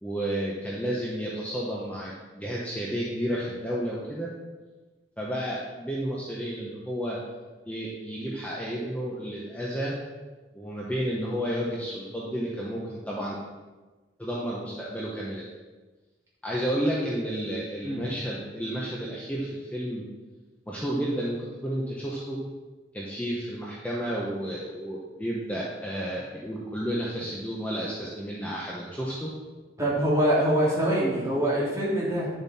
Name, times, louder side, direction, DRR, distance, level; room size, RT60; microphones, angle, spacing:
voice 1, 0.0-4.3 5.2-7.2 7.7-10.0 10.5-13.4 14.2-15.4 16.4-20.0 20.7-22.4 22.9-29.3, equal, 10° left, -5 dB, 1.2 m, -31 dB
voice 2, 29.8-32.3, right 1 dB, 20° right, -7 dB, 3.1 m, -24 dB
10.5 x 7.2 x 4.3 m, 1.3 s
head